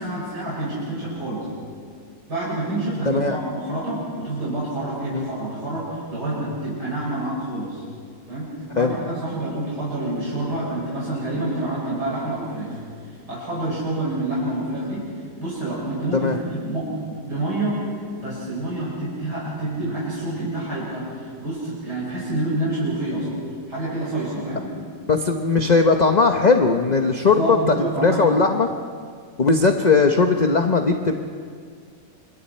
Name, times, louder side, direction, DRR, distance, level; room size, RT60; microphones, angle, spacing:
voice 1, 0.0-1.5 2.3-7.8 8.3-12.8 13.3-15.1 15.4-17.8 18.2-23.3 23.7-24.7 27.2-28.4, right 1 dB, 65° right, -7 dB, 6.8 m, -27 dB
voice 2, 3.1-3.4 5.1-5.3 8.8-8.9 16.1-16.4 25.1-28.7 29.4-31.1, left 4 dB, 35° left, 5 dB, 0.8 m, -18 dB
29.0 x 27.0 x 4.4 m, 2.1 s
omnidirectional pair, 1.9 m